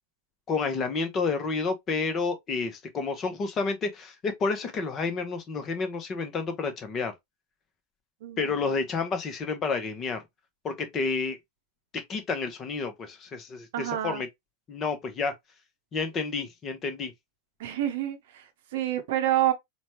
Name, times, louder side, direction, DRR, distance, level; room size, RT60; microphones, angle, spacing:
voice 1, 0.5-7.1 8.4-10.2 10.6-11.4 12.1-14.3 14.7-15.3 15.9-17.1, left 4 dB, 25° left, 0.8 m, -30 dB
voice 2, 8.2-8.8 13.7-14.3 17.6-19.5, right 12 dB, 55° right, 0.8 m, -28 dB
4.1 x 2.3 x 2.9 m
figure-of-eight pair, 90°, 0 cm